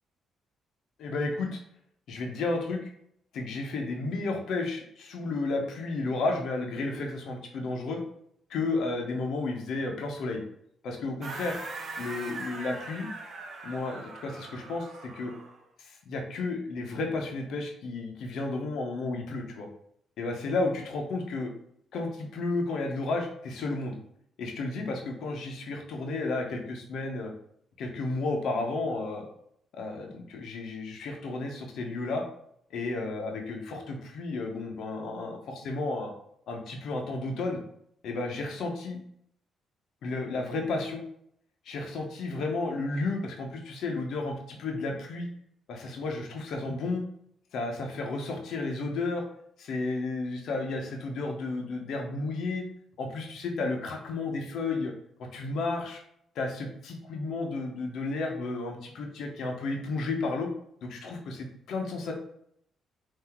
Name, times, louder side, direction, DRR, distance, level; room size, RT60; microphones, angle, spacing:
voice 1, 1.0-1.6 2.1-2.9 3.3-8.0 8.5-10.4 10.8-11.6 12.0-13.1 13.6-15.3 15.8-19.7 20.2-21.5 21.9-24.0 24.4-27.3 27.8-29.3 29.7-32.2 32.7-36.1 36.5-37.6 38.0-39.0 40.0-41.0 41.6-45.3 45.7-47.0 47.5-49.2 49.6-52.6 53.0-54.9 55.3-56.0 56.3-60.5 60.8-62.1, left 3 dB, 75° left, 2 dB, 0.9 m, -32 dB
sound 1, 11.2-15.6, right 3 dB, 55° right, 0.9 m, -41 dB
3.9 x 2.7 x 4.3 m, 0.71 s
cardioid pair, 90°, 0 cm